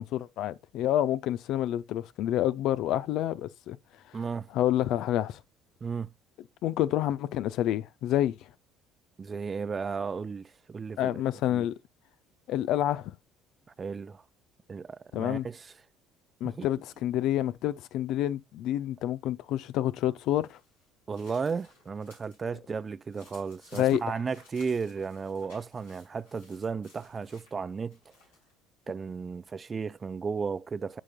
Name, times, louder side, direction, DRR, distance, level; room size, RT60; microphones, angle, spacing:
voice 1, 0.0-3.8 4.5-5.4 6.6-8.4 11.0-11.7 12.5-13.1 15.1-15.5 16.4-20.6 23.7-24.2, left 12 dB, 60° left, 0.5 m, -28 dB
voice 2, 4.1-4.5 5.8-6.1 9.2-11.1 11.5-11.7 13.8-14.2 14.7-15.7 16.4-16.7 21.1-28.0 28.9-31.0, right 5 dB, 30° right, 0.4 m, -34 dB
sound 1, 20.2-22.4 22.8-28.5, left 3 dB, 85° left, 5.7 m, -58 dB
11.0 x 6.0 x 2.3 m
hypercardioid pair, 55°, 0 cm